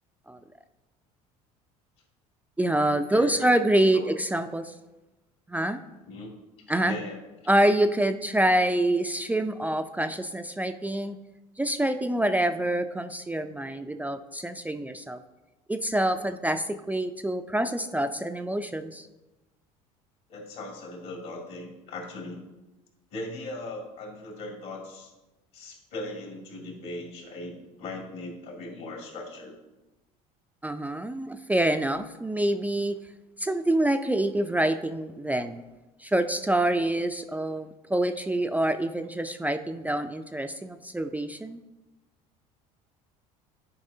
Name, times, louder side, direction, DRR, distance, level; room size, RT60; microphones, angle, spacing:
voice 1, 2.6-4.7 5.5-5.8 6.7-6.9 7.5-11.2 11.6-15.2 15.7-19.1 30.6-33.0 33.4-35.6 36.0-41.6, right 1 dB, 10° right, 8 dB, 0.4 m, -26 dB
voice 2, 3.1-3.5 3.9-4.1 6.1-6.3 6.8-7.2 20.3-22.4 23.1-25.1 25.5-29.6, left 2 dB, 65° left, 0 dB, 2.3 m, -39 dB
10.5 x 4.7 x 2.7 m, 1.1 s
hypercardioid pair, 75°, 18 cm